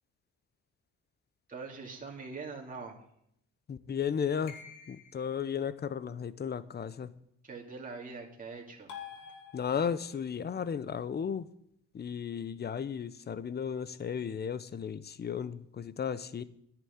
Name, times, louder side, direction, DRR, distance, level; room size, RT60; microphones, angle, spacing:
voice 1, 1.5-3.0 7.4-8.9, right 4 dB, 25° right, -2 dB, 2.6 m, -43 dB
voice 2, 3.7-4.6 4.9-7.1 9.5-11.5 11.9-16.4, left 7 dB, 35° left, 15 dB, 0.7 m, -34 dB
sound 1, 4.5-5.4 8.9-10.1, left 7 dB, 90° left, 2.0 m, -47 dB
11.0 x 6.1 x 8.6 m, 0.73 s
cardioid pair, 90°, 30 cm